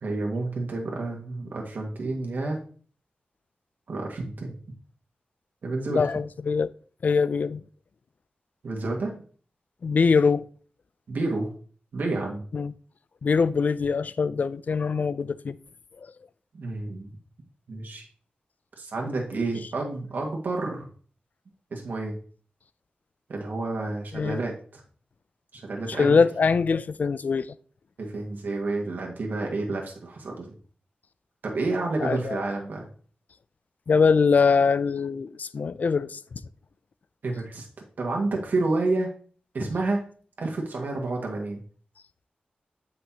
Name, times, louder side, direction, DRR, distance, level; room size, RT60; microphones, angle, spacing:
voice 1, 0.0-2.6 3.9-4.5 5.6-6.0 8.6-9.2 11.1-11.5 11.9-12.5 16.5-17.2 17.7-18.1 18.8-20.9 21.7-22.2 23.3-24.8 25.6-26.3 28.0-30.5 31.4-32.9 37.2-37.7 38.0-39.1 39.5-40.0 40.4-41.6, right 2 dB, 75° right, 1.8 m, -29 dB
voice 2, 5.9-6.7 7.0-7.6 9.8-10.5 12.5-12.7 13.2-15.6 24.1-24.4 25.9-27.5 32.0-32.4 33.9-36.2, left 5 dB, 60° left, 0.4 m, -23 dB
8.0 x 5.8 x 2.9 m
wide cardioid pair, 80°, 3 cm